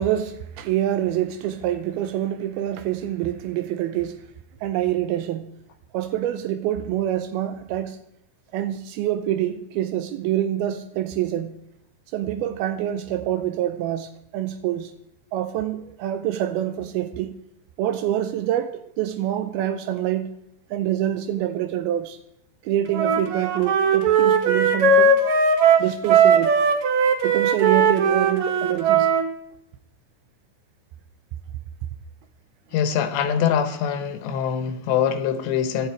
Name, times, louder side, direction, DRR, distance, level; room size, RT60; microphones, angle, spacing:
voice 1, 0.0-4.2 4.6-5.5 5.9-8.0 8.5-11.5 12.1-14.9 15.3-17.4 17.8-20.3 20.7-22.2 22.6-25.2 25.8-26.5 27.2-29.1, right 12 dB, 85° right, 2.2 m, -26 dB
Wind instrument woodwind instrument, 22.9-29.2, right 5 dB, 70° right, 1.8 m, -18 dB
voice 2, 32.7-35.9, left 8 dB, 75° left, 3.2 m, -23 dB
17.0 x 12.5 x 4.6 m
omnidirectional pair, 5.2 m